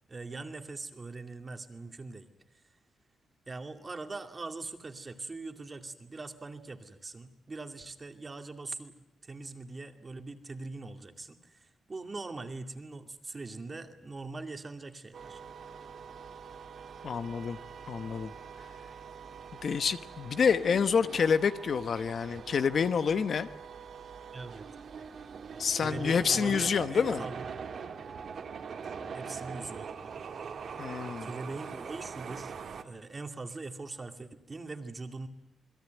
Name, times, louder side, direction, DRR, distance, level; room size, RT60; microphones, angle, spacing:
voice 1, 0.1-2.3 3.5-9.0 9.2-15.4 24.3-24.7 25.7-27.5 29.1-30.3 31.2-35.3, right 3 dB, 25° right, 7 dB, 2.3 m, -42 dB
sound 1, 15.1-32.8, right 6 dB, 50° right, 2.2 m, -43 dB
voice 2, 17.0-17.6 17.9-18.3 19.6-23.5 25.6-27.2 30.8-31.3, left 6 dB, 45° left, 12 dB, 1.1 m, -28 dB
28.5 x 21.0 x 9.3 m, 0.81 s
wide cardioid pair, 145°, 0 cm